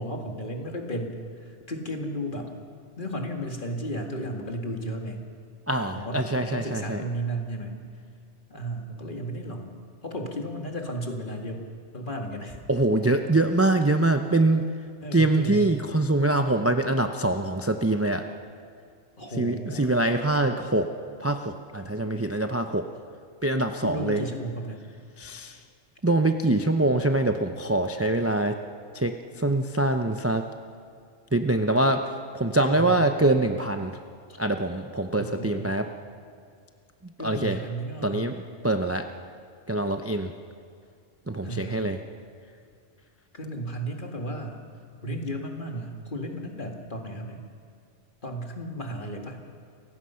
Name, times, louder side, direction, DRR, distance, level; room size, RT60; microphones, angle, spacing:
voice 1, 0.0-2.5 3.0-5.2 5.9-7.8 8.5-11.6 11.9-12.6 15.0-15.8 19.2-19.9 23.8-24.8 32.7-33.1 34.3-34.4 35.1-35.7 37.2-38.3 41.4-41.9 43.3-44.6 45.0-47.5 48.2-49.4, right 1 dB, 45° left, 2 dB, 2.2 m, -34 dB
voice 2, 5.7-7.0 12.7-14.6 15.1-18.2 19.4-20.9 21.2-22.9 23.4-24.2 25.2-25.6 26.0-28.6 28.9-30.5 31.3-32.0 32.3-34.0 34.4-35.9 37.2-37.6 38.0-38.4 38.6-39.0 39.7-40.3 41.3-42.0, right 2 dB, 15° right, 6 dB, 0.6 m, -24 dB
28.5 x 16.0 x 5.7 m, 2.3 s
omnidirectional pair, 1.2 m